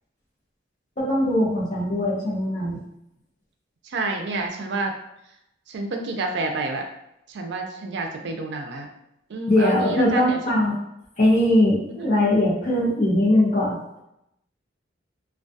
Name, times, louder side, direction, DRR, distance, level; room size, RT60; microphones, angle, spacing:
voice 1, 1.0-2.8 9.5-10.8 11.2-13.8, left 1 dB, 40° left, -7 dB, 0.7 m, -20 dB
voice 2, 3.8-4.9 5.7-6.8 7.3-8.9 9.3-10.4 12.0-12.1, right 2 dB, 60° right, 3 dB, 0.4 m, -29 dB
2.2 x 2.2 x 2.6 m, 0.81 s
head